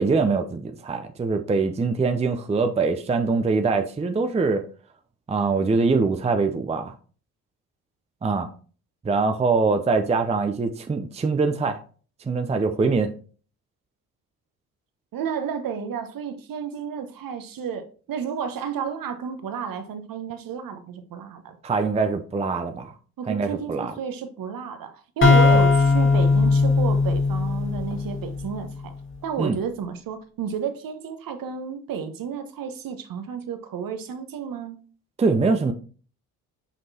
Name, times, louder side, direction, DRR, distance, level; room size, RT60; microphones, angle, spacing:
voice 1, 0.0-4.7 5.3-6.9 8.2-8.5 9.0-11.8 12.3-13.1 21.6-22.9 23.3-23.9 25.5-25.6 29.4-29.6 35.2-35.7, right 4 dB, 15° right, 0.6 m, -23 dB
voice 2, 15.1-21.6 23.2-28.9 29.2-34.8, right 7 dB, 50° right, 1.1 m, -31 dB
sound 1, 25.2-28.9, left 4 dB, 25° left, 1.7 m, -19 dB
6.2 x 5.3 x 2.8 m
hypercardioid pair, 50°, 44 cm